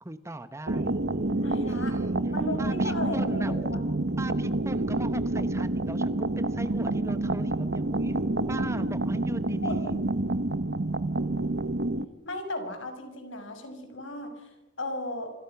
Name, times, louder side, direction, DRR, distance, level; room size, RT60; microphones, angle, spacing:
voice 1, 0.0-0.9 1.6-2.2 2.6-3.6 4.2-8.2 8.5-10.0, right 1 dB, 15° right, 12 dB, 0.9 m, -38 dB
sound 1, 0.7-12.1, right 2 dB, 55° right, 1.0 m, -28 dB
voice 2, 1.4-2.0 2.3-3.8 9.6-10.0 12.2-14.5 14.8-15.3, left 1 dB, 70° left, 6 dB, 6.0 m, -35 dB
27.0 x 26.0 x 5.9 m, 0.99 s
head